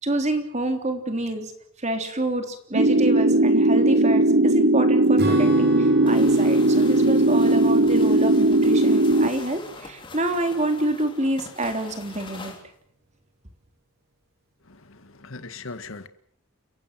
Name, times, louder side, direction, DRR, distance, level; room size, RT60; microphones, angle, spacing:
voice 1, 0.0-1.5 1.8-12.5, right 1 dB, 30° right, 6 dB, 3.5 m, -27 dB
sound 1, 2.7-9.3, right 2 dB, 65° right, 1.4 m, -18 dB
Acoustic guitar / Strum, 5.2-10.0, right 1 dB, 50° right, 5.6 m, -35 dB
sound 2, 6.0-12.6, left 3 dB, 25° left, 3.7 m, -43 dB
voice 2, 14.6-16.1, left 3 dB, 70° left, 11 dB, 1.8 m, -39 dB
29.5 x 16.0 x 7.6 m, 0.64 s
head